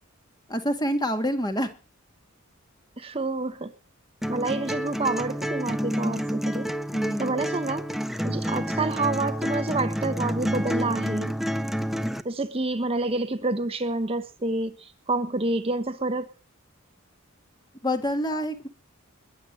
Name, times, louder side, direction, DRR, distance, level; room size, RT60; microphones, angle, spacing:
voice 1, 0.5-1.7 6.9-7.3 17.8-18.7, equal, 20° left, 7 dB, 2.2 m, -27 dB
voice 2, 3.0-3.7 4.3-6.7 7.2-7.8 8.2-11.3 12.2-16.3, right 2 dB, 25° right, 8 dB, 1.0 m, -28 dB
sound 1, 4.2-12.2, equal, ahead, 0.8 m, -29 dB
21.5 x 8.0 x 7.6 m, 0.38 s
head